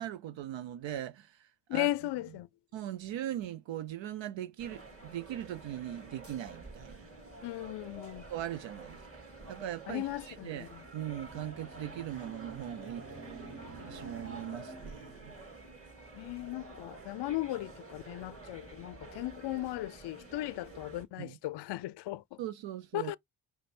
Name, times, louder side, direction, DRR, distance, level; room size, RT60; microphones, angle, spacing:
voice 1, 0.0-1.9 2.7-7.1 8.3-9.1 9.5-10.7 10.9-13.3 13.9-15.3 21.2-21.4 22.4-23.1, right 12 dB, 65° right, 0.6 m, -40 dB
voice 2, 1.7-2.5 7.4-8.2 9.9-10.8 16.1-22.4 22.9-23.2, left 16 dB, 55° left, 0.5 m, -36 dB
sound 1, 4.6-21.0, right 2 dB, 25° right, 2.7 m, -49 dB
sound 2, 10.6-15.2, right 3 dB, 45° right, 1.6 m, -50 dB
5.0 x 2.2 x 4.2 m
supercardioid pair, 45°, 49 cm